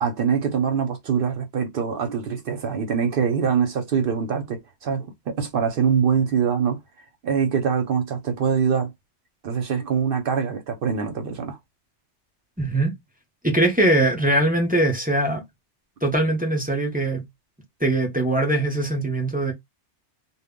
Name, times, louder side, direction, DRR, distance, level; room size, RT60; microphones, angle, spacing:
voice 1, 0.0-6.8 7.2-8.9 9.4-11.6, right 6 dB, 60° right, 0.6 m, -24 dB
voice 2, 12.6-12.9 13.4-15.4 16.0-17.2 17.8-19.5, right 1 dB, 15° right, 0.3 m, -21 dB
2.1 x 2.0 x 3.5 m
omnidirectional pair, 1.2 m